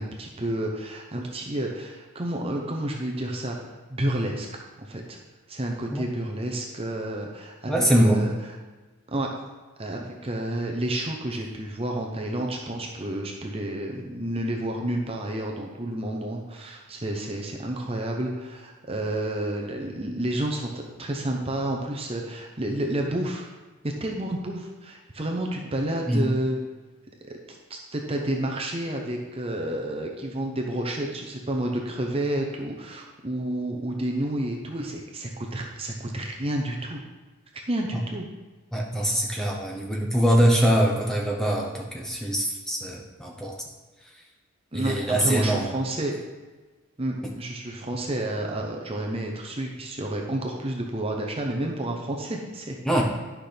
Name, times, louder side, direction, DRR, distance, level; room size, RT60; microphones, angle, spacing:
voice 1, 0.0-3.6 3.9-5.2 5.5-8.3 9.1-9.4 9.8-23.5 23.8-26.6 27.5-37.0 37.5-38.3 44.7-46.1 47.0-53.0, right 1 dB, 25° right, 1 dB, 0.7 m, -30 dB
voice 2, 7.7-8.2 26.1-26.3 38.7-43.5 44.7-45.8 52.8-53.0, equal, ahead, -2 dB, 0.9 m, -23 dB
11.0 x 5.9 x 3.4 m, 1.3 s
head